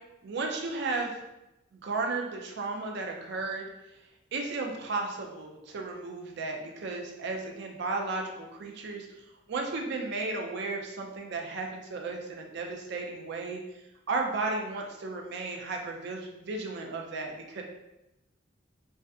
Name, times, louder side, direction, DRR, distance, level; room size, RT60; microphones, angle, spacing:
voice 1, 0.2-1.2 1.7-3.7 4.3-9.2 9.5-13.6 14.1-17.6, right 3 dB, 60° right, 1 dB, 0.4 m, -34 dB
2.6 x 2.1 x 2.3 m, 0.93 s
head